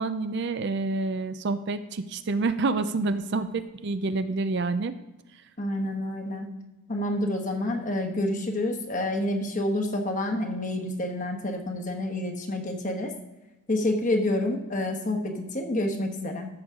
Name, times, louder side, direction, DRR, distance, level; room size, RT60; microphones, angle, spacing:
voice 1, 0.0-4.9, right 3 dB, 50° right, 11 dB, 0.5 m, -28 dB
voice 2, 5.6-6.5 6.9-13.1 13.7-16.5, left 1 dB, 35° left, 3 dB, 1.2 m, -28 dB
13.5 x 6.4 x 3.7 m, 1.0 s
head